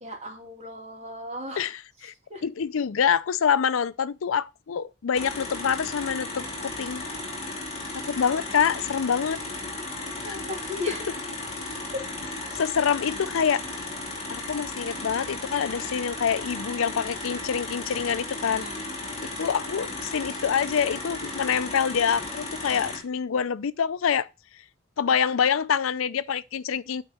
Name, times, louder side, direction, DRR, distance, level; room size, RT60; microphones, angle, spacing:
voice 1, 0.0-1.7 2.3-2.4 9.3-9.4 10.2-11.0 11.9-12.0 18.4-18.9, left 1 dB, 30° right, 2.3 m, -36 dB
voice 2, 1.6-2.1 2.4-7.0 8.1-9.4 10.9-11.0 12.5-13.6 14.3-18.7 19.2-24.3 25.0-27.0, left 7 dB, 80° left, 0.5 m, -26 dB
sound 1, 5.1-23.0, left 2 dB, 30° left, 2.5 m, -35 dB
9.1 x 4.0 x 5.5 m
head